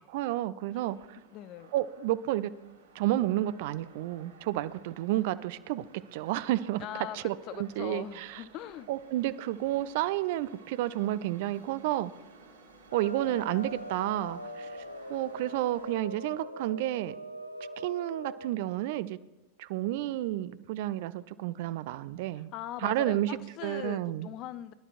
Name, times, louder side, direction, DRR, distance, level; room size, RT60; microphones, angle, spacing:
voice 1, 0.1-1.2 1.7-2.5 2.9-5.9 6.1-6.9 7.1-8.4 8.9-12.1 12.9-14.7 15.1-17.2 17.8-19.2 19.6-22.5 22.8-24.3, right 14 dB, 50° right, 15 dB, 0.4 m, -31 dB
sound 1, 0.7-15.9, right 4 dB, 65° right, 2.8 m, -56 dB
voice 2, 1.3-1.7 6.8-8.9 22.5-24.7, left 12 dB, 40° left, 14 dB, 0.6 m, -40 dB
sound 2, 12.9-18.5, equal, 85° left, 0.6 m, -42 dB
22.5 x 11.5 x 2.5 m, 1.1 s
figure-of-eight pair, 90°, 0 cm